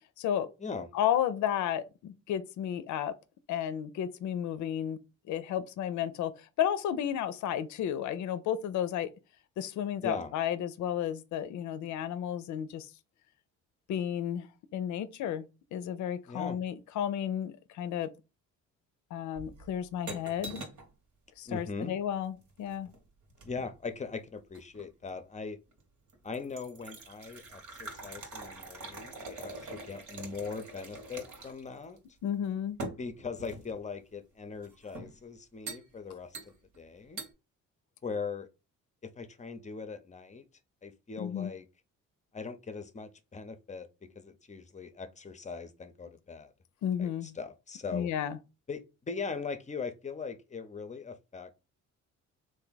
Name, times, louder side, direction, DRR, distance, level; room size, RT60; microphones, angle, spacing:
voice 1, 0.2-0.5 0.9-3.1 3.5-5.0 5.3-9.1 9.6-12.9 13.9-14.5 14.7-15.5 15.7-18.1 19.1-20.7 21.4-22.9 32.2-32.8 41.2-41.5 46.8-47.3 47.9-48.4, left 10 dB, 70° left, 0.5 m, -32 dB
voice 2, 16.3-16.6 21.5-21.9 23.4-25.6 26.2-32.0 33.0-37.2 38.0-38.5 39.0-40.4 40.8-41.6 42.3-43.9 44.2-46.5 47.0-48.1 48.7-51.5, left 4 dB, 25° left, 0.6 m, -40 dB
sound 1, 19.4-20.9 22.4-23.8 24.5-25.2 25.7-25.8 26.1-31.7 32.0-32.1 32.8-33.8 34.6-35.2 35.7-35.9 36.3-36.8 37.2-37.3, right 2 dB, 70° right, 1.4 m, -44 dB
3.4 x 2.6 x 3.9 m
cardioid pair, 90°, 30 cm